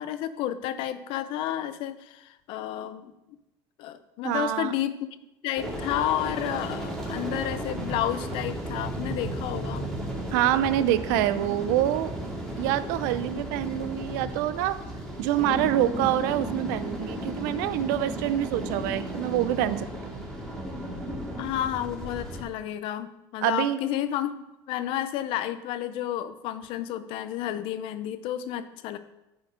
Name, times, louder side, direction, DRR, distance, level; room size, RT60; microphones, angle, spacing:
voice 1, 0.0-3.1 3.8-9.9 21.4-29.0, left 11 dB, 65° left, 12 dB, 0.6 m, -31 dB
voice 2, 4.2-4.7 10.3-12.1 12.6-14.8 15.2-20.2 23.4-23.8, right 12 dB, 90° right, 14 dB, 0.5 m, -26 dB
sound 1, 5.6-22.4, right 1 dB, ahead, 2.4 m, -34 dB
9.4 x 4.4 x 5.0 m, 0.94 s
cardioid pair, 130°, 10 cm